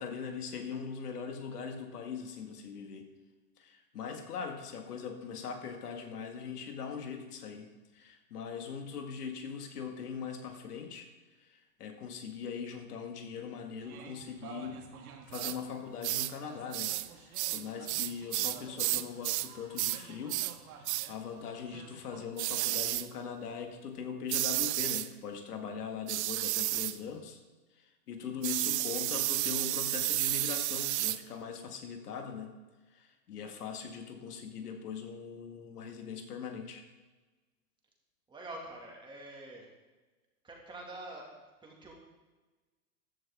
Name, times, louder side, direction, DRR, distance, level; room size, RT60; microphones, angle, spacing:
voice 1, 0.0-3.1 3.6-11.1 11.4-14.8 15.3-27.4 27.7-32.6 32.9-36.8, left 6 dB, 90° left, 4 dB, 2.1 m, -41 dB
sound 1, 13.8-22.2, right 7 dB, 70° right, 1.9 m, -52 dB
sound 2, 15.3-15.6 16.0-16.3 16.7-17.1 17.3-19.5 19.8-20.0 20.3-20.6 20.8-21.1 22.4-23.1 24.3-25.1 26.1-27.0 28.4-31.2, right 16 dB, 50° right, 0.5 m, -32 dB
voice 2, 38.3-39.7 40.4-41.9, right 1 dB, 10° right, -1 dB, 2.2 m, -46 dB
15.0 x 11.0 x 3.6 m, 1.3 s
supercardioid pair, 145°, 45 cm